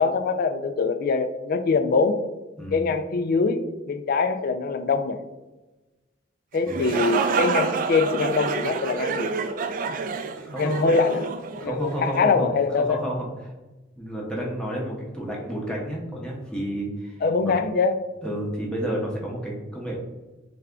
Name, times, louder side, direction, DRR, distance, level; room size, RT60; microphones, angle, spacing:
voice 1, 0.0-2.2 2.7-5.2 6.5-9.3 10.6-11.2 11.5-13.0 17.2-18.0, left 4 dB, 50° left, 10 dB, 0.4 m, -23 dB
sound 1, 6.5-12.2, right 5 dB, 45° right, 0.3 m, -28 dB
voice 2, 10.4-10.9 11.6-12.5 12.8-13.5 14.0-17.5 18.2-20.0, right 1 dB, 5° left, -3 dB, 0.7 m, -31 dB
3.4 x 3.3 x 3.6 m, 1.1 s
head